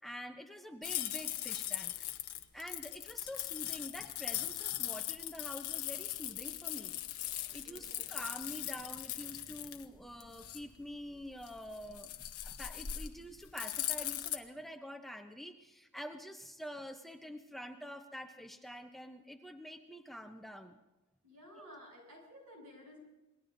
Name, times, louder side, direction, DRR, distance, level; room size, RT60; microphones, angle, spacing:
voice 1, 0.0-1.9 2.5-7.0 7.5-12.1 12.4-20.8 21.6-21.7, equal, ahead, 5 dB, 0.6 m, -47 dB
sound 1, 0.8-14.4, left 12 dB, 85° left, 0.9 m, -40 dB
voice 2, 7.6-8.0 21.2-23.0, equal, 90° right, -1 dB, 7.5 m, -54 dB
27.0 x 21.0 x 2.6 m, 1.0 s
head